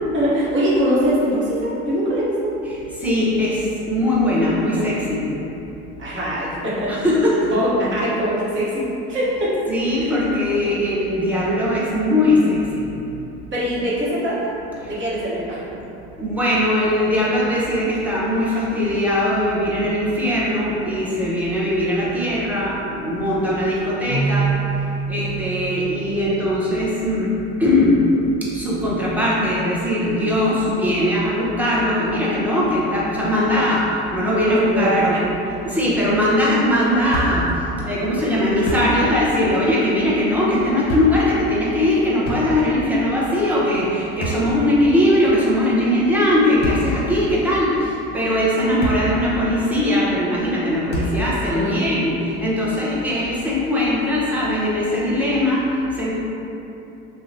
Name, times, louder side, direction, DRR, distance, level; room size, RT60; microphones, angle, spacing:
voice 1, 0.1-2.5 6.0-7.1 7.4-9.6 10.0-10.1 13.5-14.5 14.9-15.6 34.4-35.2 51.5-51.8, equal, 40° right, -8 dB, 1.0 m, -22 dB
voice 2, 3.0-5.3 6.9-7.3 9.7-12.9 14.8-14.9 16.2-27.3 27.6-28.0 28.4-35.2 35.6-56.1, left 1 dB, 5° right, -7 dB, 0.8 m, -20 dB
Keyboard (musical), 24.1-27.0, right 5 dB, 70° right, 0.9 m, -26 dB
Thump thud, 37.1-37.6 37.9-38.0 38.5-39.2 39.5-39.7 40.6-41.3 42.2-42.9 44.0-45.0 46.4-47.1 47.8-47.9 48.5-49.3 49.5-49.7 50.9-51.3, equal, 35° left, 0.9 m, -27 dB
2.8 x 2.2 x 3.8 m, 2.9 s
supercardioid pair, 100°, 30 cm